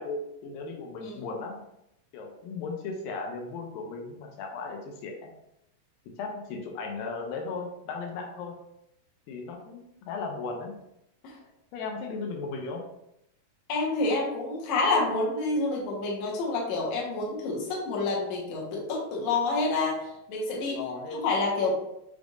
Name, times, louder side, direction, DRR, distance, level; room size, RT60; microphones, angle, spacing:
voice 1, 0.0-1.6 2.1-5.3 6.2-8.6 9.3-10.7 11.7-12.8 20.0-20.1 20.5-21.2, left 4 dB, 90° left, 1 dB, 2.4 m, -36 dB
voice 2, 13.7-20.8 21.1-21.7, left 3 dB, 65° left, -3 dB, 2.0 m, -28 dB
6.2 x 3.5 x 2.4 m, 0.81 s
omnidirectional pair, 4.1 m